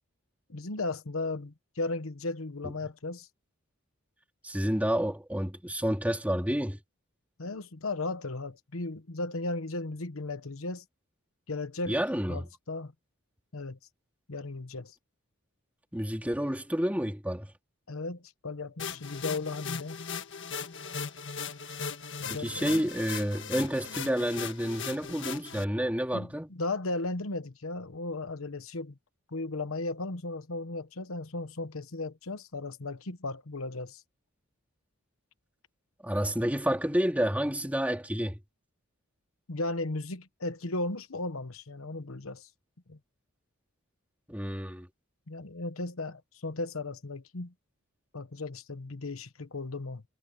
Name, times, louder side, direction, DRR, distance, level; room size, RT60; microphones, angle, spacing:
voice 1, 0.5-3.3 7.4-10.8 11.5-12.0 12.3-12.9 13.5-13.8 14.3-14.9 17.9-20.0 22.2-22.8 26.1-29.0 29.3-34.0 39.5-42.5 42.9-43.0 45.3-47.5 48.1-50.0, left 2 dB, 75° left, 1.1 m, -36 dB
voice 2, 4.4-6.8 11.9-12.5 15.9-17.5 22.4-26.5 36.0-38.4 44.3-44.9, equal, 5° right, 2.6 m, -29 dB
sound 1, 18.8-25.6, left 6 dB, 55° left, 1.6 m, -38 dB
head